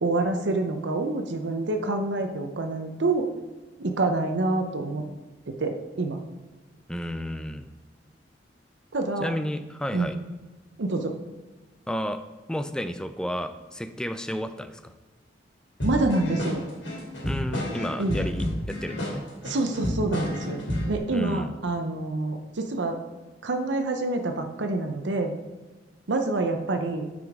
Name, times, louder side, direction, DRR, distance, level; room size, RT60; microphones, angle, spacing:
voice 1, 0.0-3.3 3.8-5.0 5.5-6.2 8.9-9.3 9.9-10.1 10.8-11.2 15.8-16.6 18.0-18.2 19.4-23.0 23.4-25.3 26.1-27.1, right 2 dB, 85° right, 5 dB, 0.7 m, -27 dB
voice 2, 6.9-7.7 9.2-10.2 11.9-12.2 12.5-14.9 17.2-19.3 20.7-20.8 21.1-21.5, equal, 5° left, 9 dB, 0.4 m, -32 dB
sound 1, 15.8-21.0, left 1 dB, 90° left, 2.6 m, -30 dB
9.5 x 5.1 x 3.6 m, 1.3 s
head